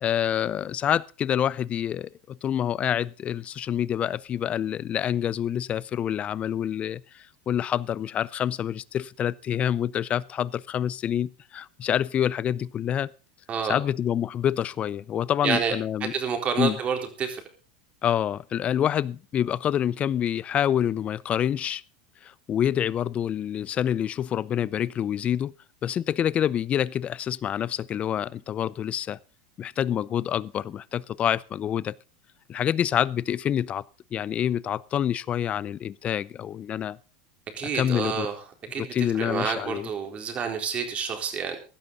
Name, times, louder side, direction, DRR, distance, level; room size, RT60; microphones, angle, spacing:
voice 1, 0.0-13.1 13.7-16.1 16.6-16.8 18.0-21.8 22.2-25.5 25.8-29.2 29.6-32.0 32.5-33.8 34.1-37.0 37.7-38.3 38.8-39.9, left 10 dB, 35° left, 0.5 m, -27 dB
voice 2, 13.5-13.8 15.4-15.7 16.1-17.4 37.6-38.3 38.7-41.6, right 6 dB, 35° right, 3.9 m, -28 dB
16.0 x 12.0 x 4.0 m
supercardioid pair, 110°, 4 cm